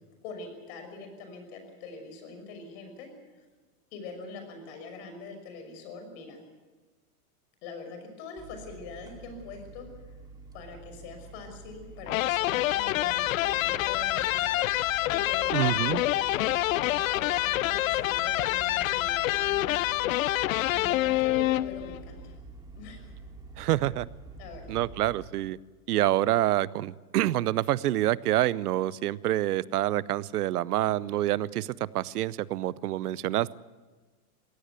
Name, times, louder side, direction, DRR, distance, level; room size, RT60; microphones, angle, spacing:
voice 1, 0.2-3.1 3.3-3.4 3.9-6.4 7.6-9.9 10.5-14.8 15.1-19.8 20.7-22.3 22.8-23.1 24.4-24.8, left 3 dB, 45° left, 6 dB, 6.1 m, -44 dB
sound 1, 8.4-25.3, right 3 dB, 10° right, 2.7 m, -47 dB
sound 2, 12.1-22.0, left 16 dB, 65° left, 0.6 m, -27 dB
voice 2, 15.5-16.0 23.6-24.1 24.7-25.6 25.9-33.5, right 14 dB, 85° right, 20 dB, 0.8 m, -27 dB
22.0 x 17.0 x 8.2 m, 1.3 s
supercardioid pair, 155°, 44 cm